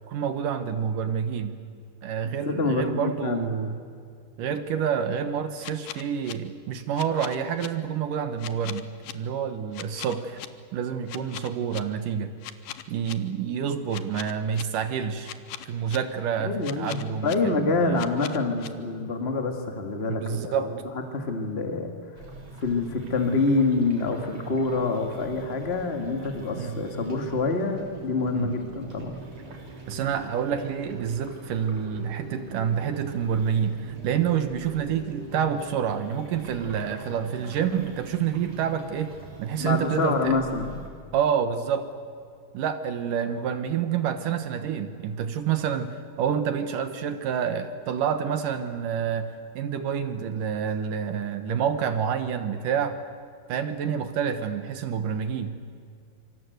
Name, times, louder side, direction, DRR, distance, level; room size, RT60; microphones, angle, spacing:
voice 1, 0.1-1.6 2.0-3.8 4.4-10.4 10.7-12.3 12.9-15.3 15.7-18.1 20.1-20.7 26.6-26.8 28.3-28.5 29.9-40.4 41.1-41.9 42.5-53.0 53.5-55.6, right 8 dB, 65° right, 9 dB, 2.4 m, -28 dB
voice 2, 2.2-3.5 16.4-20.6 20.9-21.9 22.6-29.1 39.6-40.7, left 3 dB, 30° left, 5 dB, 1.1 m, -26 dB
sound 1, 5.6-6.3 6.9-7.7 8.4-9.1 9.7-10.5 11.1-11.8 12.4-13.1 13.9-14.6 15.2-16.0 16.6-17.3 18.0-18.7, left 13 dB, 70° left, 2.4 m, -39 dB
sound 2, 22.2-40.9, right 2 dB, 40° right, 4.3 m, -43 dB
27.0 x 25.0 x 8.0 m, 2.3 s
omnidirectional pair, 4.5 m